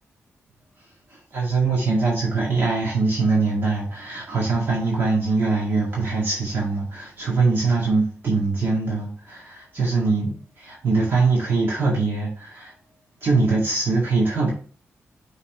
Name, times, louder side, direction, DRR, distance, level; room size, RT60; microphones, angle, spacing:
voice 1, 1.1-12.7 13.2-14.5, right 3 dB, 50° right, 2.0 m, -22 dB
5.7 x 4.0 x 4.4 m
wide cardioid pair, 115°, 5 cm